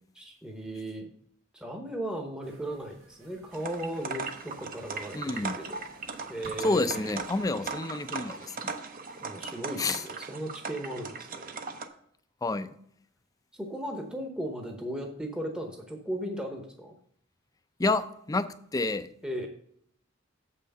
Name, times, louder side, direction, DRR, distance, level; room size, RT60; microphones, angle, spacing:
voice 1, 0.1-1.1 1.5-5.8 6.3-7.1 9.2-11.6 13.5-16.9 19.2-19.5, right 1 dB, 5° right, 2 dB, 0.8 m, -37 dB
sound 1, 2.4-7.4, right 1 dB, 90° right, 3.0 m, -56 dB
sound 2, 3.5-11.9, right 4 dB, 45° right, 0.7 m, -38 dB
voice 2, 5.1-5.5 6.6-8.7 9.8-10.0 12.4-12.7 17.8-18.0 18.3-19.1, left 2 dB, 20° left, 11 dB, 0.4 m, -29 dB
7.4 x 5.7 x 5.3 m, 0.66 s
head